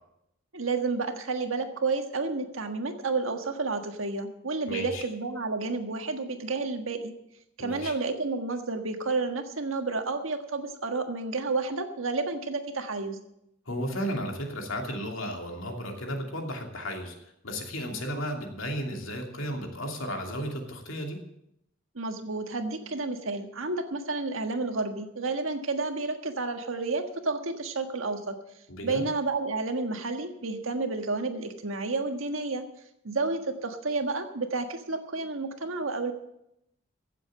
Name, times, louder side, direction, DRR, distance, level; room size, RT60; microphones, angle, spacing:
voice 1, 0.5-7.1 7.6-13.2 21.9-28.3 28.8-32.6 33.0-36.1, right 3 dB, 80° right, 6 dB, 1.6 m, -30 dB
voice 2, 4.7-5.0 7.6-7.9 13.7-17.1 17.4-21.2 28.7-29.0, equal, 75° left, 2 dB, 2.8 m, -34 dB
16.0 x 7.7 x 7.6 m, 0.80 s
head